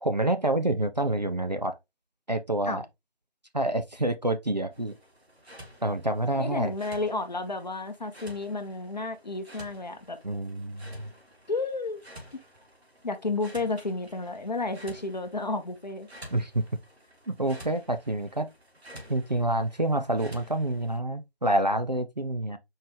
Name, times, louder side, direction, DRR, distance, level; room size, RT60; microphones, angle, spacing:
voice 1, 0.0-1.8 2.3-2.8 3.5-4.9 5.8-6.7 10.2-11.1 16.3-16.6 17.3-18.5 19.1-22.6, right 1 dB, 45° right, 0.4 m, -27 dB
sound 1, 4.7-21.0, equal, 80° right, 1.7 m, -51 dB
voice 2, 6.4-10.2 11.5-12.0 12.3-12.4 13.0-16.1, left 3 dB, 45° left, 0.7 m, -32 dB
4.5 x 3.3 x 3.1 m
figure-of-eight pair, 160°, 31 cm